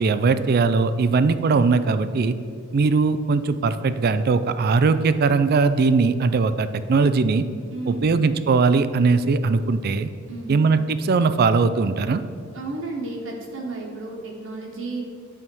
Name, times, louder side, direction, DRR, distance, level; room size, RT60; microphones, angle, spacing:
voice 1, 0.0-2.3 2.7-7.5 7.9-10.1 10.5-12.2, right 4 dB, 50° right, 12 dB, 0.4 m, -20 dB
voice 2, 7.7-8.2 10.3-10.7 12.5-15.0, right 3 dB, 65° right, -1 dB, 1.2 m, -32 dB
9.7 x 3.6 x 6.1 m, 2.3 s
head